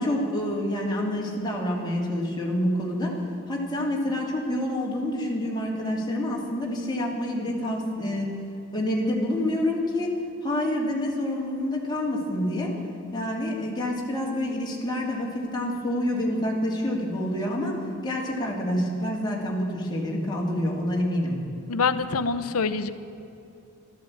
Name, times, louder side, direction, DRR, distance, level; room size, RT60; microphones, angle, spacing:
voice 1, 0.0-3.2 3.5-8.3 8.7-10.1 10.4-12.7 13.1-21.4, left 1 dB, 20° left, -3 dB, 2.8 m, -27 dB
voice 2, 21.7-22.9, left 4 dB, 80° left, 11 dB, 0.8 m, -25 dB
13.0 x 12.0 x 8.7 m, 2.7 s
head